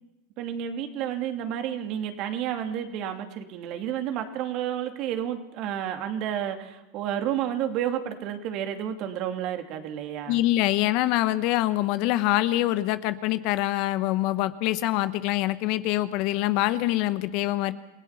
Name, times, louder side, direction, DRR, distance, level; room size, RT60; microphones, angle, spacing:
voice 1, 0.4-10.4, right 10 dB, 50° right, 6 dB, 2.6 m, -31 dB
voice 2, 10.3-17.7, left 16 dB, 55° left, 13 dB, 1.1 m, -25 dB
28.5 x 17.0 x 5.9 m, 1.0 s
hypercardioid pair, 100°, 0 cm